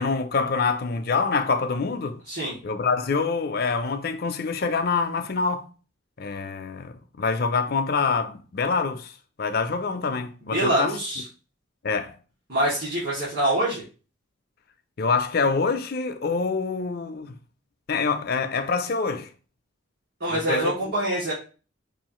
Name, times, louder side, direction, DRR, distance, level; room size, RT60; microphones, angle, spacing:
voice 1, 0.0-2.2 2.6-5.7 6.2-9.1 9.4-11.0 11.8-12.2 15.0-17.3 17.9-19.3 20.3-20.7, left 4 dB, 50° left, 0.5 m, -25 dB
voice 2, 10.5-11.2 12.5-13.8 20.2-21.3, right 1 dB, 55° right, 2.4 m, -25 dB
5.5 x 2.5 x 3.0 m
head